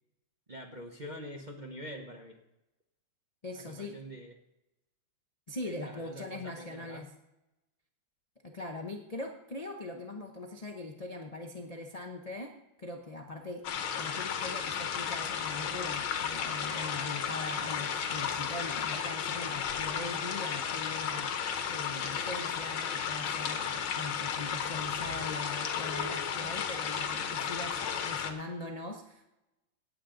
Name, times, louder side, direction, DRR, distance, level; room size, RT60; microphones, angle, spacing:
voice 1, 0.5-2.4 3.6-4.3 5.6-7.1, equal, 40° right, 2 dB, 0.6 m, -45 dB
voice 2, 3.4-4.0 5.5-7.1 8.4-12.5 12.8-13.7 14.0-21.3 21.7-29.2, left 2 dB, 60° left, 2 dB, 0.4 m, -41 dB
sound 1, 13.6-28.3, left 7 dB, 75° left, 1.9 m, -34 dB
17.5 x 8.6 x 3.8 m, 0.95 s
omnidirectional pair, 2.3 m